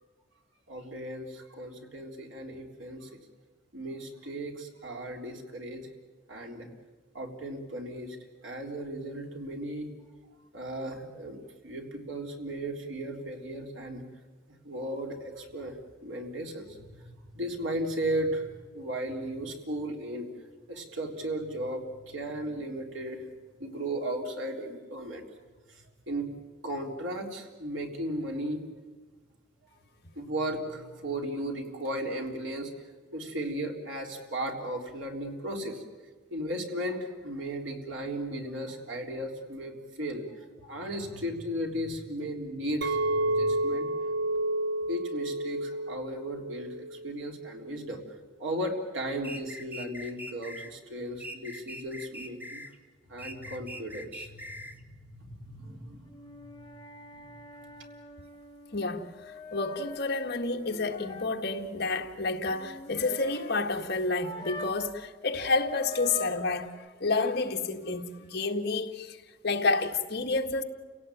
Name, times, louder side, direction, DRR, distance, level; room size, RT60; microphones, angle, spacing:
voice 1, 0.7-3.2 3.7-5.9 6.3-6.7 7.1-8.2 8.4-9.9 10.5-14.0 14.6-18.5 18.7-20.3 20.7-23.2 23.6-25.3 25.7-26.3 26.6-28.6 30.2-35.8 36.3-43.9 44.9-48.0 48.4-52.6 53.1-56.7, right 1 dB, 85° right, 3.7 m, -36 dB
Chink clink, 42.8-47.2 47.5-47.9, right 1 dB, 65° right, 0.8 m, -30 dB
sound 1, 49.2-50.7 51.2-52.7 53.2-54.8, equal, 10° right, 1.4 m, -42 dB
sound 2, 56.1-64.9 65.2-66.7, left 3 dB, 25° left, 2.6 m, -45 dB
voice 2, 58.7-69.2 69.4-70.6, left 3 dB, 55° left, 1.7 m, -30 dB
30.0 x 17.5 x 9.2 m
head